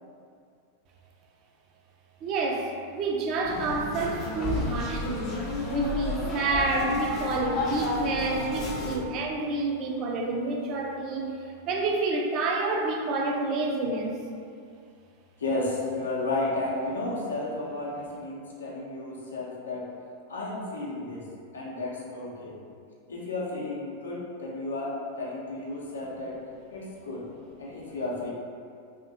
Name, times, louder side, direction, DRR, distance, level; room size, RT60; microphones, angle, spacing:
voice 1, 2.2-5.4 5.7-14.2, right 3 dB, 40° right, 1 dB, 0.3 m, -29 dB
sound 1, 3.4-9.0, left 2 dB, 30° left, 0.5 m, -31 dB
voice 2, 15.4-19.9 20.3-21.3 21.5-22.5 23.1-26.4 26.7-27.2 27.6-28.3, left 2 dB, 75° left, -5 dB, 0.5 m, -33 dB
2.6 x 2.1 x 2.6 m, 2.3 s
figure-of-eight pair, 90°, 0 cm